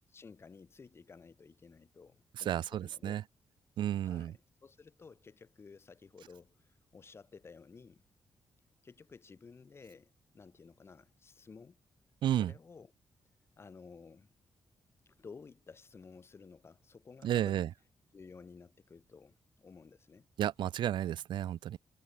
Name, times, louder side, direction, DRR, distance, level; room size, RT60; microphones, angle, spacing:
voice 1, 0.1-3.2 4.0-8.0 8.8-11.8 12.3-12.9 13.6-14.3 15.2-17.7 18.1-20.3, left 5 dB, 30° left, 5.1 m, -54 dB
voice 2, 2.5-3.2 3.8-4.3 12.2-12.5 17.2-17.7 20.4-21.8, right 11 dB, 80° right, 0.5 m, -32 dB
wide cardioid pair, 155°, 8 cm